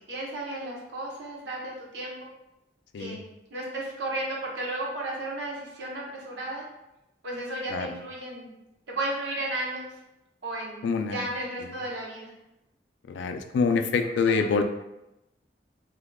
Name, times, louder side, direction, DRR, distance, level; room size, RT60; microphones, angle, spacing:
voice 1, 0.1-2.3 3.0-3.2 3.5-6.6 7.2-8.5 8.9-9.9 10.4-10.8 11.1-12.3 14.3-14.6, right 1 dB, 85° right, -2 dB, 0.8 m, -34 dB
voice 2, 10.8-11.3 13.1-14.6, left 4 dB, 85° left, 7 dB, 0.3 m, -26 dB
3.4 x 2.8 x 2.2 m, 0.92 s
head